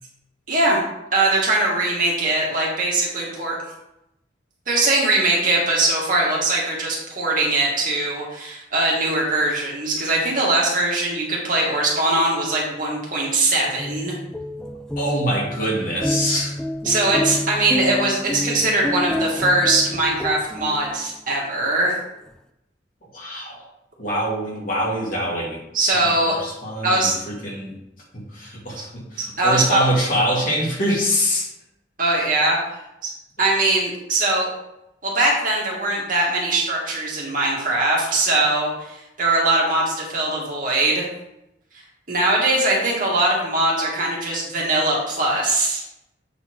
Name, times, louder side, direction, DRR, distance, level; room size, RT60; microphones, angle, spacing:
voice 1, 0.5-0.8 1.1-3.6 4.7-14.2 16.9-21.9 25.7-26.4 26.8-27.1 29.2-29.8 32.0-32.6 33.0-33.1 33.4-34.5 35.0-41.1 42.1-45.8, right 2 dB, 45° right, -3 dB, 2.1 m, -21 dB
sound 1, 13.6-21.3, left 1 dB, 5° left, 0.3 m, -29 dB
voice 2, 15.0-16.6 23.1-23.6 24.0-25.6 26.0-27.8 28.1-31.5, equal, 50° left, -5 dB, 2.7 m, -24 dB
8.0 x 4.3 x 4.7 m, 0.86 s
head